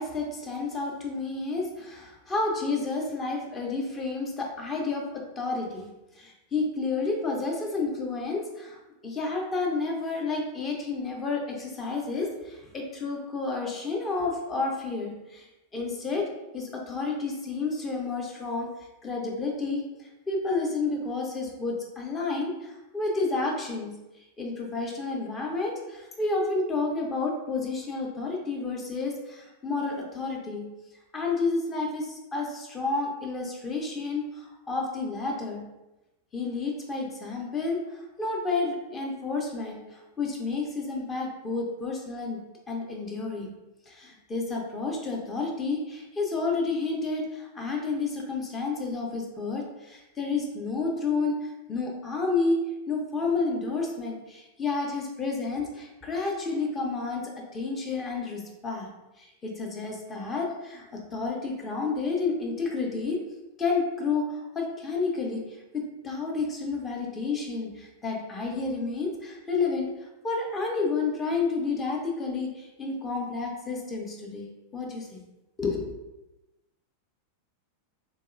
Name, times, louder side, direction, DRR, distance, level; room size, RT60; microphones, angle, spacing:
voice 1, 0.0-5.9 6.2-8.8 9.0-16.3 16.5-18.7 19.0-23.9 24.4-30.7 31.1-35.6 36.3-42.4 42.7-43.5 43.9-52.6 52.9-58.9 59.2-63.2 63.6-69.9 70.2-75.2 75.6-75.9, left 3 dB, 20° left, 0 dB, 0.7 m, -30 dB
3.2 x 2.7 x 2.4 m, 0.99 s
figure-of-eight pair, 90°, 0 cm